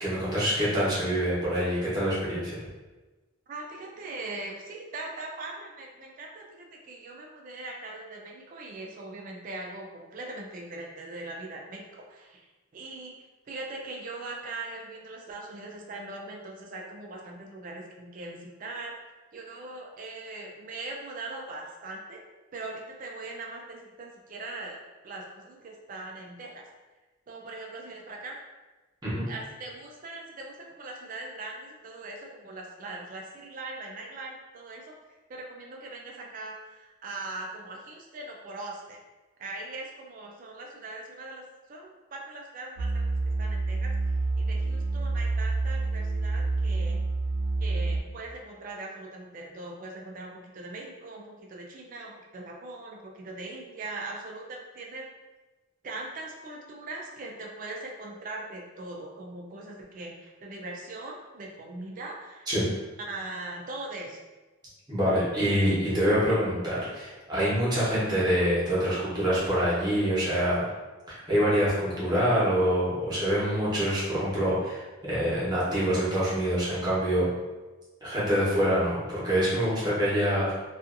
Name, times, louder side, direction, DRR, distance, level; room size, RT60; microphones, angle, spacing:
voice 1, 0.0-2.6 29.0-29.3 62.5-62.6 64.9-70.6 71.1-77.3 78.0-80.5, equal, 20° right, -9 dB, 0.9 m, -26 dB
voice 2, 3.5-12.4 12.7-13.1 13.5-19.0 19.3-22.2 22.5-26.7 27.3-28.3 29.3-39.0 39.4-47.0 47.6-55.0 55.8-62.5 63.1-64.2, right 2 dB, 40° right, 0 dB, 0.3 m, -40 dB
sound 1, 42.8-48.0, right 3 dB, 90° right, 0.7 m, -28 dB
2.6 x 2.4 x 2.5 m, 1.2 s
head